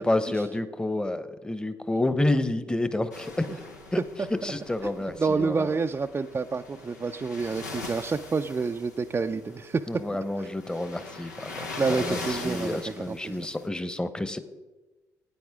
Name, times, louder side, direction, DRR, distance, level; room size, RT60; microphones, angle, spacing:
voice 1, 0.0-3.4 3.9-4.0 4.4-5.8 9.9-14.4, left 1 dB, 10° left, 12 dB, 1.0 m, -29 dB
sound 1, 3.1-13.7, left 3 dB, 85° left, 1.0 m, -41 dB
voice 2, 4.8-9.9 10.4-10.5 11.8-13.5, right 4 dB, 25° right, 5 dB, 0.5 m, -29 dB
17.5 x 9.3 x 3.6 m, 1.2 s
figure-of-eight pair, 50°, 9 cm